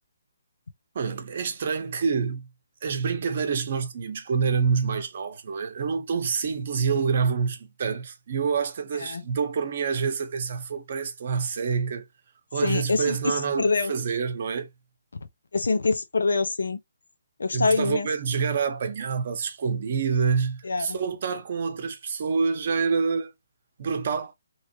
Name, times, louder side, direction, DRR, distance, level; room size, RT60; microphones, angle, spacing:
voice 1, 0.9-2.5 2.8-12.1 12.5-14.7 17.5-23.3 23.8-24.3, right 5 dB, 50° right, 0.8 m, -27 dB
voice 2, 12.6-13.9 15.5-16.8 17.4-18.1 20.6-21.0, left 4 dB, 80° left, 0.6 m, -25 dB
3.1 x 2.1 x 2.9 m
hypercardioid pair, 150°, 0 cm